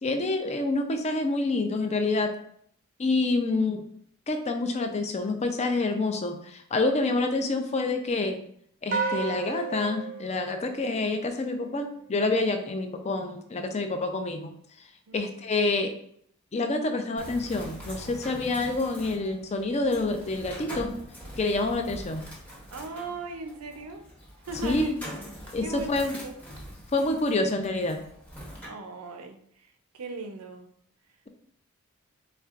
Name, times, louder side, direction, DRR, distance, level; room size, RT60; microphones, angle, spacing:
voice 1, 0.0-2.3 3.0-3.9 4.3-8.4 8.8-14.5 15.1-15.9 16.5-20.9 21.4-22.2 24.6-25.0 25.5-26.1 26.9-28.0, left 2 dB, 30° left, 5 dB, 0.4 m, -27 dB
sound 1, 8.9-11.4, right 5 dB, 40° right, 0.5 m, -33 dB
Bird, 17.2-28.7, equal, 10° left, 0.9 m, -43 dB
voice 2, 22.7-24.1 24.5-25.0 25.6-26.4 28.6-29.4 29.9-30.7, right 3 dB, 85° right, 6 dB, 0.6 m, -38 dB
4.3 x 3.4 x 2.4 m, 0.66 s
head